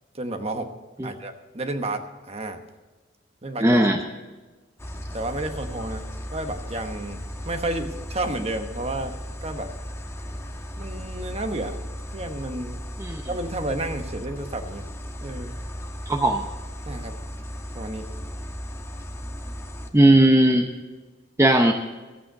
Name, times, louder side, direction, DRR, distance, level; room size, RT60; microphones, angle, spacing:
voice 1, 0.1-0.7 1.0-2.6 3.4-3.9 5.1-9.7 10.8-11.8 12.1-12.8 13.3-14.9 15.2-15.5 16.9-17.2 17.7-18.1, right 2 dB, 35° right, 7 dB, 1.1 m, -31 dB
voice 2, 3.6-4.0 13.0-13.2 16.1-16.4 19.9-20.7 21.4-21.7, right 1 dB, 15° right, 3 dB, 0.7 m, -17 dB
sound 1, 4.8-19.9, equal, 15° left, 1.2 m, -36 dB
14.0 x 8.8 x 6.6 m, 1.2 s
head